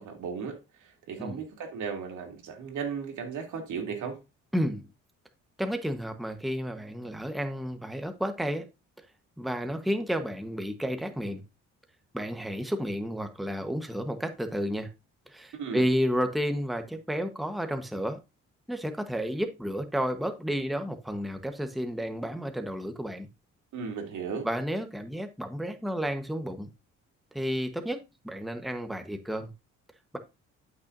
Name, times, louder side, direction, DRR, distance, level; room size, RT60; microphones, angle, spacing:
voice 1, 0.0-4.2 15.5-15.8 23.7-24.5, right 6 dB, 75° right, 2.6 m, -36 dB
voice 2, 4.5-4.8 5.6-8.7 9.4-11.4 12.1-14.9 15.3-18.2 18.7-23.3 24.4-26.7 27.3-29.5, equal, ahead, 1.1 m, -31 dB
11.5 x 5.8 x 2.6 m
cardioid pair, 90°, 30 cm